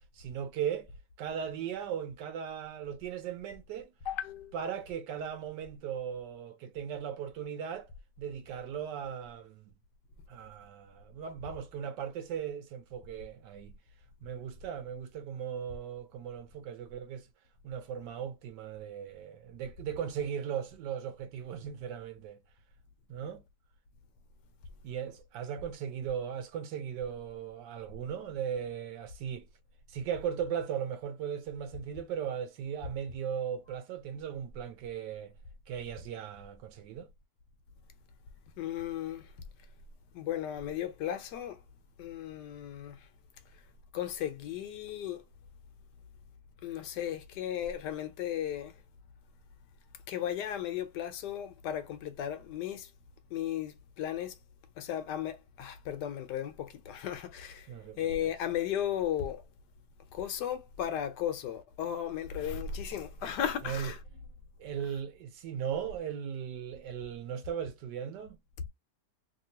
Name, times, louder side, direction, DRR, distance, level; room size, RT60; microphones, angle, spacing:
voice 1, 0.1-0.9 1.2-3.9 4.5-7.9 8.2-9.7 10.3-13.7 14.2-17.3 17.6-22.4 23.1-23.4 24.8-29.5 29.9-35.3 35.7-37.1 57.7-58.1 63.6-63.9 64.6-68.4, right 8 dB, 80° right, 1.2 m, -38 dB
voice 2, 4.0-4.7 38.6-39.3 40.1-41.6 42.0-43.0 43.9-45.2 46.6-48.8 50.1-52.9 53.3-54.4 54.8-57.7 58.0-59.4 60.1-64.0 64.8-65.0, left 10 dB, 80° left, 1.3 m, -35 dB
3.0 x 2.8 x 2.7 m
omnidirectional pair, 1.8 m